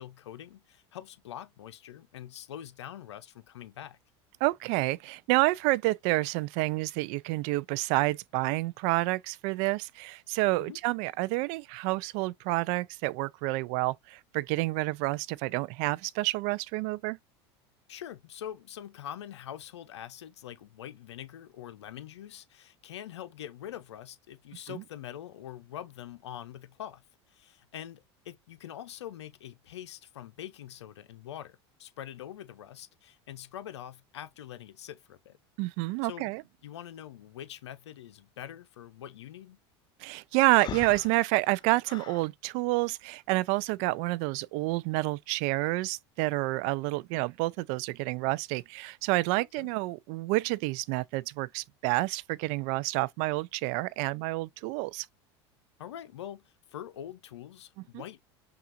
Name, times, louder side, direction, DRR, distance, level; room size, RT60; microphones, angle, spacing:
voice 1, 0.0-4.0 10.6-10.8 17.9-27.0 27.3-35.4 36.0-36.3 36.6-39.6 49.5-49.7 55.8-58.2, left 11 dB, 85° left, 0.6 m, -44 dB
voice 2, 4.4-17.2 24.7-24.8 35.6-36.4 40.0-55.1 57.9-58.0, right 21 dB, 60° right, 0.4 m, -29 dB
Breathing, 40.5-42.3, left 11 dB, 30° left, 0.3 m, -41 dB
5.7 x 2.4 x 2.5 m
hypercardioid pair, 90°, 14 cm